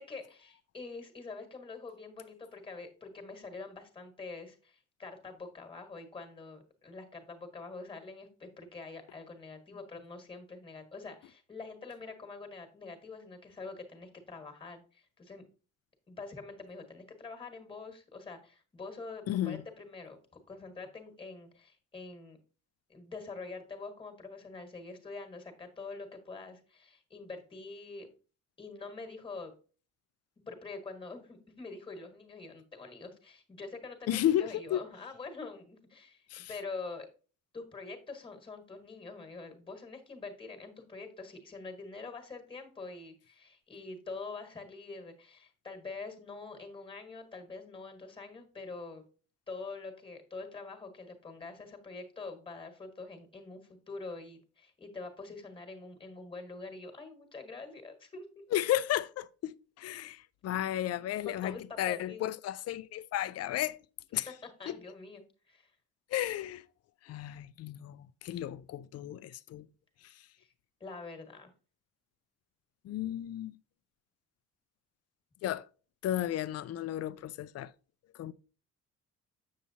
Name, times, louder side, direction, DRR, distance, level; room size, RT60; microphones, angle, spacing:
voice 1, 0.0-15.4 16.1-20.2 20.5-22.4 22.9-28.1 28.6-29.5 30.5-37.1 37.5-49.0 49.5-58.3 61.2-62.3 64.4-65.7 70.4-70.5 70.8-71.5, left 3 dB, 15° left, 1.5 m, -45 dB
voice 2, 19.3-19.6 34.1-34.8 36.3-36.5 58.5-63.8 64.1-64.3 64.7-64.8 66.1-66.6 67.0-69.7 70.0-70.1 72.8-73.6 75.4-75.7 76.0-77.7 78.1-78.3, left 12 dB, 55° left, 0.5 m, -33 dB
7.5 x 7.0 x 2.7 m
cardioid pair, 160°, 30 cm